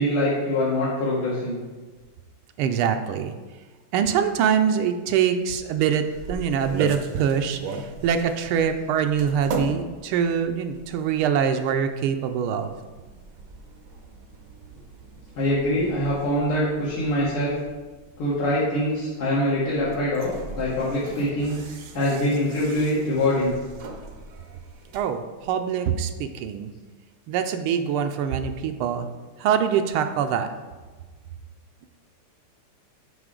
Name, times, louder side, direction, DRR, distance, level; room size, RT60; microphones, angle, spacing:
voice 1, 0.0-1.6 15.4-17.6 18.2-21.6 21.9-23.5, left 1 dB, 85° left, -9 dB, 2.5 m, -24 dB
voice 2, 2.6-3.3 3.9-12.8 24.9-26.7 27.3-29.1 29.4-30.5, right 8 dB, 80° right, 7 dB, 1.4 m, -24 dB
sound 1, 5.9-25.0, right 3 dB, 65° right, 0.8 m, -39 dB
9.4 x 5.5 x 3.7 m, 1.3 s
omnidirectional pair, 2.4 m